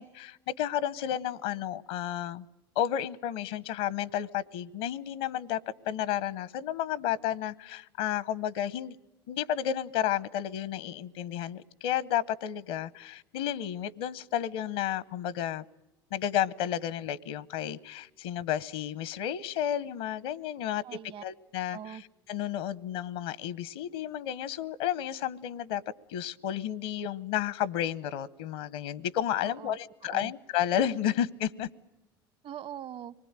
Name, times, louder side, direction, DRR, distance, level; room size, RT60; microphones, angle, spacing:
voice 1, 0.0-2.4 2.7-5.6 5.8-9.0 9.3-15.6 16.1-20.8 21.2-25.8 26.1-31.7, left 10 dB, 75° left, 21 dB, 0.9 m, -32 dB
voice 2, 20.8-21.2 21.7-22.0 29.4-29.8 30.1-30.3 32.4-33.1, right 9 dB, 50° right, 16 dB, 1.0 m, -42 dB
26.0 x 20.5 x 8.9 m, 0.96 s
hypercardioid pair, 75°, 12 cm